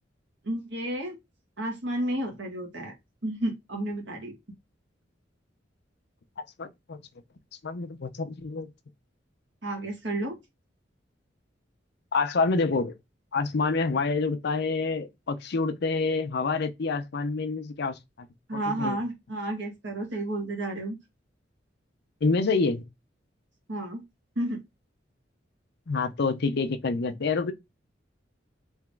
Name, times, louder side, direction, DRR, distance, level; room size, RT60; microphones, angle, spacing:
voice 1, 0.4-1.2 1.6-2.9 3.2-4.3 9.6-10.4 18.5-21.0 23.7-24.0 24.4-24.6, right 1 dB, 70° right, 1.7 m, -31 dB
voice 2, 6.6-7.0 7.6-8.7 12.1-12.9 13.3-18.3 18.5-19.0 22.2-22.8 25.9-27.5, left 4 dB, 60° left, 0.6 m, -27 dB
3.5 x 3.0 x 3.4 m
head